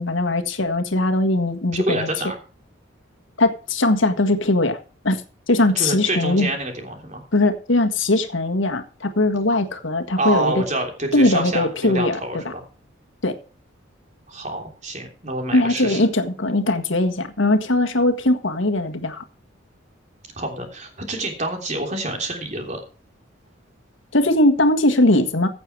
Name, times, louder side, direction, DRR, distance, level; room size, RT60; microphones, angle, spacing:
voice 1, 0.0-2.1 3.4-4.8 5.0-5.2 5.5-6.5 7.3-10.6 11.1-12.2 12.4-12.5 13.2-13.4 15.5-19.2 24.1-25.5, left 2 dB, 70° left, 1.6 m, -20 dB
voice 2, 1.7-2.4 5.7-7.2 10.2-12.6 14.3-16.0 20.4-22.8, right 2 dB, 35° right, 3.3 m, -27 dB
16.0 x 6.9 x 4.8 m
head